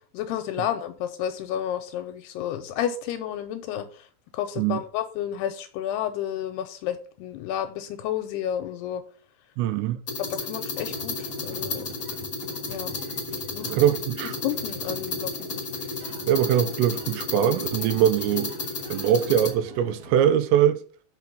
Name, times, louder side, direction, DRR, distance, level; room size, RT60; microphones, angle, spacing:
voice 1, 0.1-4.1 4.3-9.0 10.2-11.9 12.7-13.0 13.5-13.7 14.2-15.5, left 10 dB, 85° left, 2.5 m, -31 dB
voice 2, 9.6-10.0 13.6-14.3 16.3-18.5 18.9-20.8, right 10 dB, 90° right, 2.9 m, -22 dB
sound 1, 10.1-19.5, left 4 dB, 55° left, 0.9 m, -33 dB
sound 2, 10.7-20.2, equal, 70° right, 0.9 m, -45 dB
6.0 x 6.0 x 6.8 m
omnidirectional pair, 5.1 m